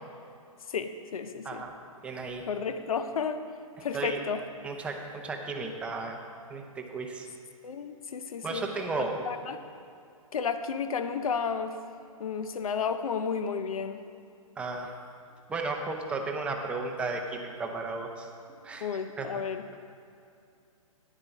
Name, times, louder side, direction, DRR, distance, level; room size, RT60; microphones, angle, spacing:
voice 1, 0.7-1.6 2.5-3.4 3.8-4.4 7.6-8.6 9.3-9.6 10.3-11.8 12.2-14.0 18.8-19.6, left 6 dB, 75° left, 10 dB, 0.7 m, -32 dB
voice 2, 2.0-2.4 3.9-4.2 4.6-6.2 6.5-7.3 8.4-9.3 14.6-14.9 15.5-18.3 18.6-18.9 19.2-19.4, right 3 dB, 5° right, 2 dB, 0.6 m, -34 dB
10.0 x 9.4 x 4.0 m, 2.5 s
hypercardioid pair, 150°, 18 cm